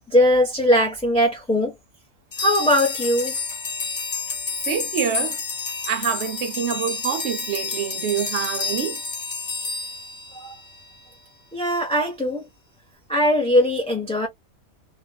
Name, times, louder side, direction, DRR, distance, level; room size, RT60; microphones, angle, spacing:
voice 1, 0.1-1.7 2.4-3.4 10.3-10.5 11.5-12.4 13.1-14.3, equal, 5° left, 0.9 m, -20 dB
sound 1, 2.3-10.8, left 4 dB, 35° left, 0.9 m, -30 dB
voice 2, 4.7-5.4 5.9-9.0, right 8 dB, 65° right, 0.8 m, -26 dB
3.6 x 2.4 x 2.3 m
omnidirectional pair, 1.4 m